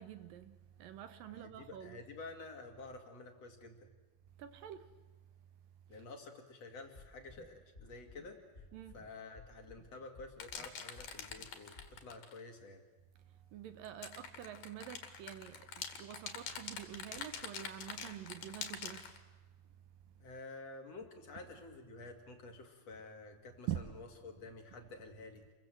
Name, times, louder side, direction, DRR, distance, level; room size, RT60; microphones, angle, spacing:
voice 1, 0.0-2.0 4.4-4.9 8.7-9.0 13.5-19.0 23.7-23.8, right 11 dB, 70° right, 2.5 m, -46 dB
voice 2, 1.3-3.8 5.9-8.6 8.9-12.8 20.2-25.4, left 3 dB, 45° left, 3.2 m, -50 dB
sound 1, 6.9-7.4 7.7-8.2 8.5-9.0 9.3-9.8 10.1-10.6 10.9-11.4 11.7-11.9, left 3 dB, 25° left, 3.6 m, -55 dB
sound 2, 10.4-12.4 13.8-19.2, left 7 dB, 65° left, 3.6 m, -45 dB
29.0 x 23.0 x 7.7 m
omnidirectional pair, 4.4 m